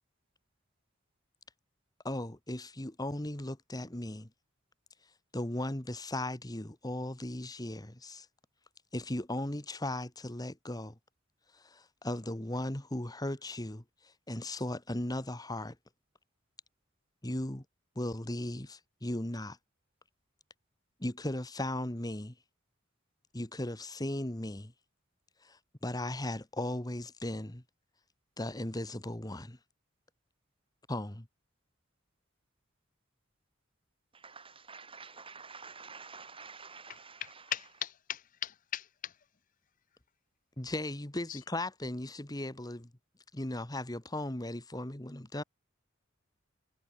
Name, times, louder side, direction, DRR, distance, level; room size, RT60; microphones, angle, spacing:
voice 1, 2.0-4.3 5.3-8.3 8.9-11.0 11.5-13.8 14.3-15.8 17.2-17.6 18.0-19.6 21.0-22.4 23.3-24.7 25.4-27.6 28.4-29.6 30.9-31.3 40.6-42.9 43.3-45.4, left 1 dB, 20° left, 1.7 m, -37 dB
voice 2, 34.2-37.5, right 5 dB, 25° right, 5.4 m, -49 dB
voice 3, 37.5-38.8, left 10 dB, 40° left, 0.7 m, -37 dB
head